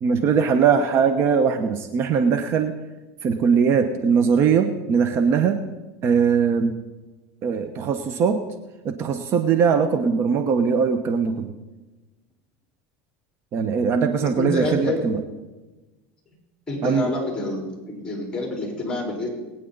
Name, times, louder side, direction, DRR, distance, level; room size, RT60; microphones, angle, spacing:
voice 1, 0.0-2.7 3.2-5.6 6.0-6.8 7.4-8.4 8.8-11.5 13.5-15.2 16.8-17.1, right 6 dB, 45° right, 7 dB, 1.0 m, -20 dB
voice 2, 14.4-15.0 16.7-19.3, left 2 dB, 15° left, 0 dB, 4.3 m, -27 dB
21.5 x 9.2 x 4.0 m, 1.1 s
supercardioid pair, 125°, 6 cm